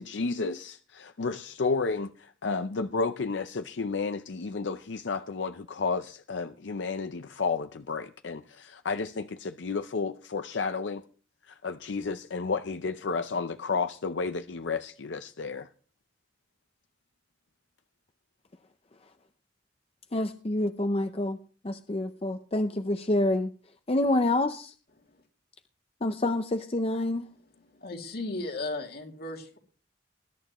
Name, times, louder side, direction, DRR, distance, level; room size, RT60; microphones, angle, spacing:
voice 1, 0.0-2.1 2.4-11.0 11.6-15.7, left 4 dB, 75° left, 0.6 m, -32 dB
voice 2, 20.1-21.4 21.6-23.5 23.9-24.7 26.0-27.3, left 1 dB, 30° left, 0.6 m, -27 dB
voice 3, 27.3-29.6, left 2 dB, 55° left, 2.5 m, -37 dB
20.5 x 11.0 x 3.0 m
head